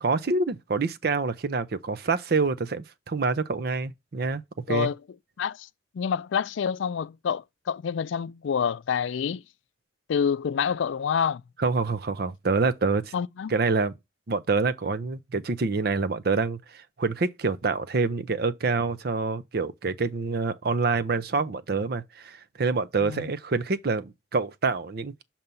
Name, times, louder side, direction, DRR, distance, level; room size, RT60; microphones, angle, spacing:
voice 1, 0.0-4.9 11.6-13.1 13.5-13.9 14.3-25.2, right 4 dB, 55° right, 0.6 m, -26 dB
voice 2, 5.9-9.4 10.1-11.4 13.1-13.5 23.0-23.3, left 7 dB, 85° left, 0.4 m, -27 dB
6.8 x 2.9 x 5.3 m
head